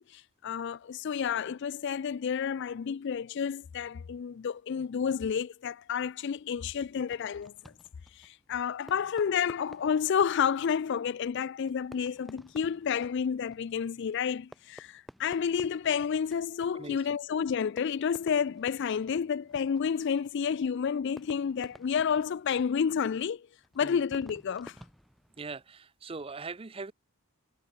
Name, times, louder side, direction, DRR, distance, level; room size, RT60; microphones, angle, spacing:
voice 1, 0.0-7.5 8.2-23.5 23.8-24.8, left 7 dB, 50° left, 0.3 m, -30 dB
Fireworks, 7.0-25.8, equal, ahead, 4.1 m, -55 dB
voice 2, 16.7-17.2 23.8-24.0 25.4-26.9, right 4 dB, 25° right, 0.5 m, -41 dB
head